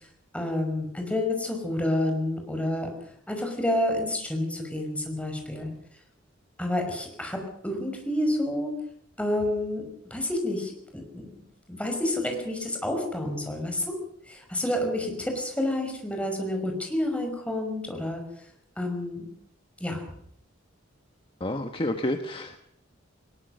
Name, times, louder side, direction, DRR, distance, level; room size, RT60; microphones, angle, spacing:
voice 1, 0.3-2.9 3.3-5.7 6.6-8.7 9.2-11.4 11.7-14.0 14.3-18.2 18.8-19.3 19.8-20.0, left 1 dB, 5° left, 3 dB, 5.6 m, -29 dB
voice 2, 21.4-22.6, left 1 dB, 30° left, 6 dB, 1.4 m, -29 dB
21.0 x 20.0 x 6.6 m, 0.70 s
head